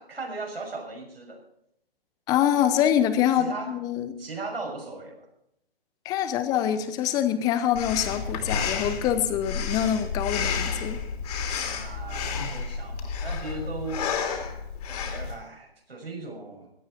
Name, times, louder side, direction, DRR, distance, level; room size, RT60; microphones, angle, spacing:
voice 1, 0.0-1.4 3.3-3.8 4.2-5.3 11.7-14.1 14.9-16.7, right 3 dB, 80° right, 1 dB, 6.2 m, -37 dB
voice 2, 2.3-4.1 6.0-11.0, left 10 dB, 10° left, 11 dB, 0.8 m, -25 dB
Breathing, 7.8-15.4, left 5 dB, 40° left, 2.8 m, -31 dB
17.0 x 12.5 x 4.4 m, 0.75 s
figure-of-eight pair, 135°, 29 cm